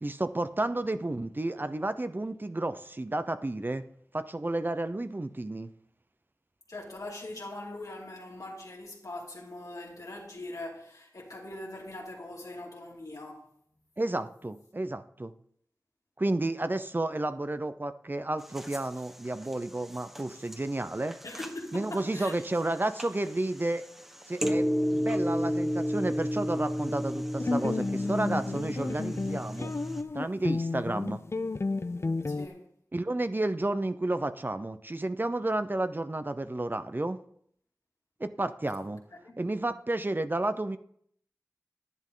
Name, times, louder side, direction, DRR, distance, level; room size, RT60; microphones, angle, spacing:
voice 1, 0.0-3.8 4.1-5.7 14.0-15.3 16.2-21.2 21.7-23.8 24.3-24.7 24.9-29.7 30.1-31.2 32.9-37.2 38.2-39.0 39.4-40.8, right 2 dB, 35° right, 0.6 m, -31 dB
voice 2, 6.7-13.5 21.2-22.4 32.3-32.7 38.8-38.9 39.2-39.4, left 2 dB, 75° left, 2.7 m, -42 dB
sound 1, 18.4-30.0, equal, 5° right, 1.3 m, -33 dB
sound 2, 27.4-32.5, left 3 dB, 50° left, 0.5 m, -32 dB
11.0 x 10.5 x 3.8 m
wide cardioid pair, 55°, 6 cm